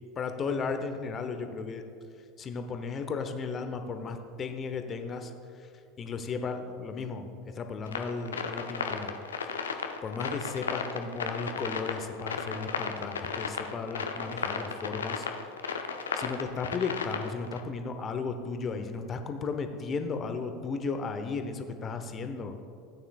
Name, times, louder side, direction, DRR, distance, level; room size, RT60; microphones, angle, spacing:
voice 1, 0.2-1.8 2.4-5.3 6.0-9.1 9.7-15.3 16.1-22.5, left 4 dB, 30° left, 7 dB, 0.9 m, -35 dB
sound 1, 7.9-17.6, left 5 dB, 75° left, 0.6 m, -34 dB
16.0 x 9.0 x 2.4 m, 2.5 s
figure-of-eight pair, 75°, 0 cm